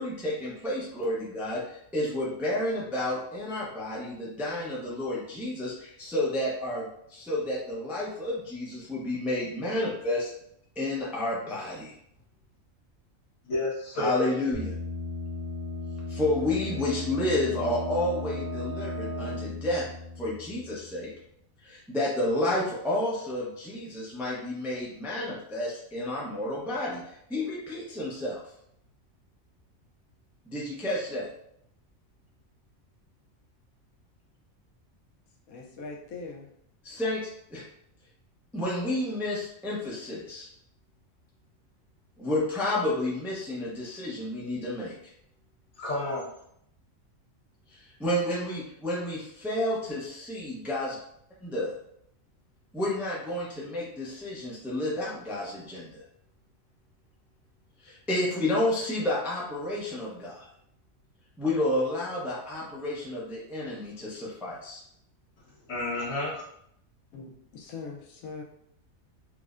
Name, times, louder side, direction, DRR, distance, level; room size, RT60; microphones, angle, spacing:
voice 1, 0.0-10.3 10.8-11.9 14.0-14.7 16.1-19.8 20.2-21.1 21.6-28.4 30.4-31.3 36.8-37.6 38.5-40.5 42.2-44.9 47.7-51.0 51.4-51.7 52.7-56.0 57.8-60.5 61.4-64.8, left 1 dB, ahead, -6 dB, 0.5 m, -30 dB
voice 2, 13.4-14.3 45.8-46.2 65.7-66.4, left 2 dB, 65° left, -7 dB, 1.7 m, -30 dB
sound 1, 14.5-21.1, left 2 dB, 85° right, 2.0 m, -36 dB
voice 3, 35.5-36.5 67.1-68.4, left 4 dB, 85° left, -1 dB, 1.1 m, -41 dB
4.6 x 2.1 x 2.4 m, 0.71 s
omnidirectional pair, 1.4 m